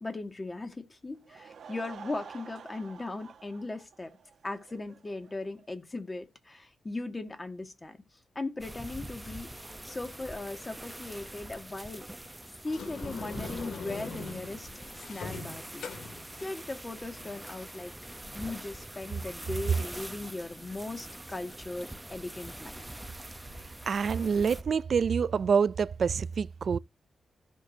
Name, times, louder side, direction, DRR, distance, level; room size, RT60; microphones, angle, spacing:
voice 1, 0.0-4.1 4.4-8.0 8.4-12.1 12.6-14.7 15.1-15.9 16.4-17.9 18.3-22.9, left 2 dB, 20° left, 1.9 m, -38 dB
Laughter / Crowd, 1.1-5.7, right 7 dB, 70° right, 1.5 m, -50 dB
sound 1, 8.6-24.6, right 1 dB, 10° right, 0.8 m, -44 dB
Sliding door, 12.7-17.8, left 4 dB, 80° left, 2.4 m, -42 dB
voice 2, 23.9-26.8, right 6 dB, 55° right, 0.4 m, -27 dB
15.0 x 6.3 x 2.8 m
wide cardioid pair, 120°, 0 cm